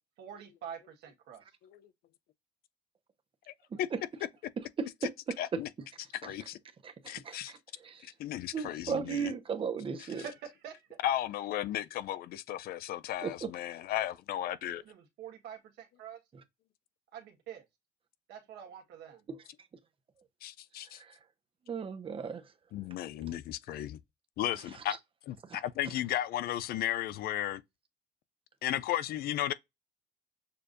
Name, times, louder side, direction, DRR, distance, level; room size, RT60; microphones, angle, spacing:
voice 1, 0.2-1.4 10.0-10.9 14.8-16.2 17.1-17.6 18.3-19.2, right 8 dB, 80° right, 1.4 m, -46 dB
voice 2, 3.5-3.9 5.4-5.7 6.2-6.6 7.1-7.5 8.0-9.3 10.0-10.1 11.0-14.8 20.4-21.0 22.7-24.0 24.4-25.0 25.3-27.6 28.6-29.5, left 12 dB, 65° left, 0.4 m, -35 dB
voice 3, 6.8-7.4 7.8-8.0 8.5-10.2 13.2-13.5 19.3-19.4 21.7-22.4, right 6 dB, 30° right, 0.8 m, -35 dB
6.7 x 2.5 x 2.5 m
cardioid pair, 110°, 17 cm